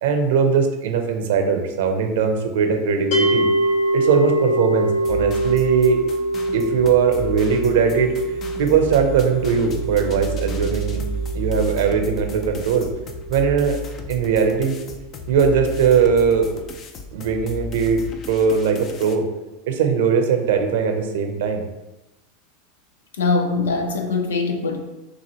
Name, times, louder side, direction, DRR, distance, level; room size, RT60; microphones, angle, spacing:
voice 1, 0.0-3.5 3.9-6.0 6.5-8.1 8.6-11.0 11.3-12.9 13.3-13.8 14.1-14.7 15.3-16.5 17.1-18.0 18.3-19.3 19.7-21.6, right 6 dB, 75° right, 5 dB, 0.7 m, -20 dB
sound 1, 3.1-14.3, right 1 dB, 70° left, 1.0 m, -25 dB
sound 2, 4.9-19.2, left 5 dB, 40° left, 0.6 m, -36 dB
sound 3, 6.2-13.8, right 6 dB, 55° right, 0.3 m, -32 dB
voice 2, 23.2-24.8, left 4 dB, 90° left, 4 dB, 0.7 m, -22 dB
6.0 x 2.5 x 3.0 m, 1.0 s
hypercardioid pair, 100°, 0 cm